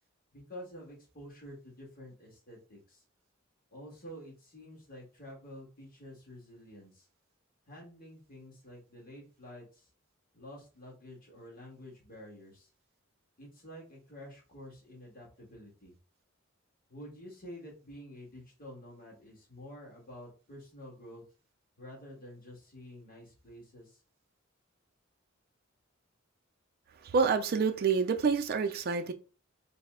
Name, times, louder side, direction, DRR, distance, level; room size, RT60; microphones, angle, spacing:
voice 1, 0.3-3.0 3.7-7.1 7.7-9.9 10.3-12.7 13.4-16.0 16.9-21.2 21.8-24.0, equal, 45° left, 1.6 m, -49 dB
voice 2, 27.1-29.1, right 5 dB, 50° right, 0.4 m, -27 dB
4.0 x 2.1 x 3.5 m
head